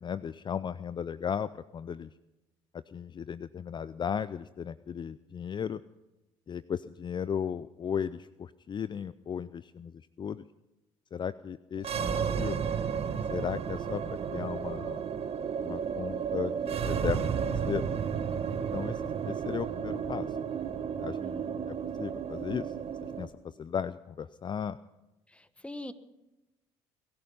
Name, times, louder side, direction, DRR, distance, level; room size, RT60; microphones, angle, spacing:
voice 1, 0.0-2.1 2.7-5.8 6.5-10.4 11.1-12.7 13.3-15.0 15.6-17.9 18.5-20.4 21.0-21.2 21.7-22.7 23.0-24.8, left 7 dB, 40° left, 16 dB, 0.5 m, -36 dB
sound 1, 11.8-23.3, right 7 dB, 55° right, 1.4 m, -33 dB
voice 2, 21.2-21.6 25.3-25.9, left 1 dB, 10° left, 12 dB, 1.2 m, -43 dB
22.0 x 11.5 x 5.5 m, 1.0 s
supercardioid pair, 65°, 13 cm